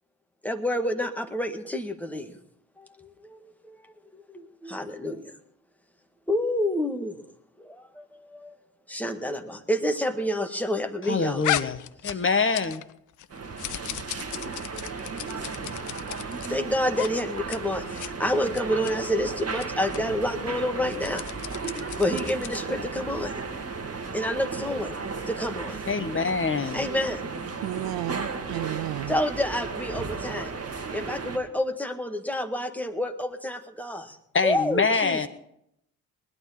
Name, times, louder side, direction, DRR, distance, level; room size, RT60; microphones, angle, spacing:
voice 1, 0.4-2.3 2.8-3.8 4.1-5.3 6.3-7.2 7.6-8.6 8.9-11.5 16.5-21.2 22.0-23.3 24.1-24.9 25.3-25.8 26.7-27.2 29.1-30.5 30.9-34.2 34.4-35.3, left 1 dB, 5° left, 1.8 m, -28 dB
voice 2, 11.1-11.8 12.1-12.8 25.9-26.8 34.3-35.3, left 4 dB, 25° left, 1.2 m, -25 dB
sound 1, 11.4-12.9 13.2-16.5 16.9-17.1 17.4-17.6 17.9-18.1 18.5-18.9 19.5-19.7 19.9-20.0 20.8-22.7, left 12 dB, 40° left, 0.7 m, -34 dB
sound 2, 13.3-31.4, right 4 dB, 30° right, 2.0 m, -35 dB
voice 3, 27.6-29.2, right 17 dB, 55° right, 0.6 m, -32 dB
20.0 x 12.0 x 4.3 m
figure-of-eight pair, 40°, 45 cm